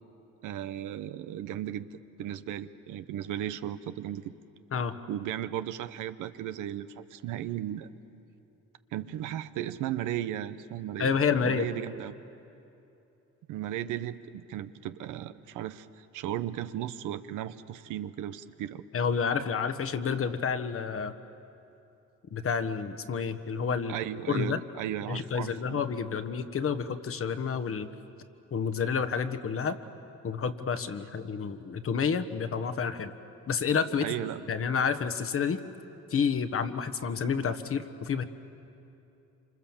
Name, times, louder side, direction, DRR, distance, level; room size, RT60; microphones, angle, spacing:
voice 1, 0.4-4.3 5.1-7.9 8.9-11.1 11.4-12.2 13.5-18.8 23.9-25.8 34.0-34.5, right 11 dB, 90° right, 11 dB, 0.9 m, -35 dB
voice 2, 11.0-11.7 18.9-21.1 22.3-24.0 24.3-24.6 25.1-27.9 28.5-29.8 30.2-33.1 33.5-34.1 34.5-35.6 36.1-38.2, left 6 dB, 45° left, 10 dB, 1.3 m, -29 dB
27.0 x 26.5 x 7.3 m, 2.8 s
cardioid pair, 90°, 30 cm